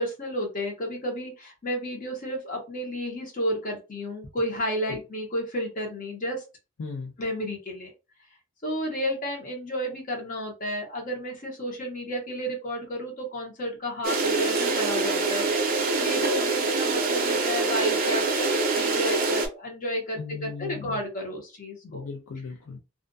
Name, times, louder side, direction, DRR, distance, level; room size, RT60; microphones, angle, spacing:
voice 1, 0.0-6.4 7.2-7.9 8.6-15.5 16.0-22.0, equal, 35° left, 0.8 m, -32 dB
voice 2, 6.8-7.1 20.2-21.0 21.8-22.8, left 4 dB, 70° left, 0.4 m, -37 dB
sound 1, 14.0-19.5, right 3 dB, 40° right, 0.5 m, -25 dB
2.4 x 2.1 x 2.5 m
head